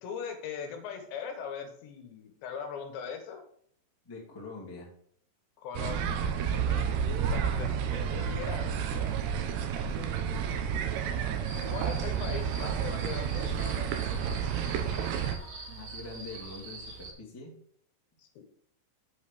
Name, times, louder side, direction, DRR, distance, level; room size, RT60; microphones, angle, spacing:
voice 1, 0.0-3.4 5.6-8.9 11.7-14.6 18.2-18.4, left 7 dB, 70° left, 5 dB, 3.1 m, -41 dB
voice 2, 4.0-4.9 15.7-17.5, left 3 dB, 30° left, -4 dB, 0.4 m, -44 dB
sound 1, 5.7-15.4, right 7 dB, 75° right, 2.6 m, -30 dB
sound 2, 11.4-17.1, right 3 dB, 50° right, 4.1 m, -45 dB
8.1 x 5.5 x 6.7 m, 0.63 s
omnidirectional pair, 5.7 m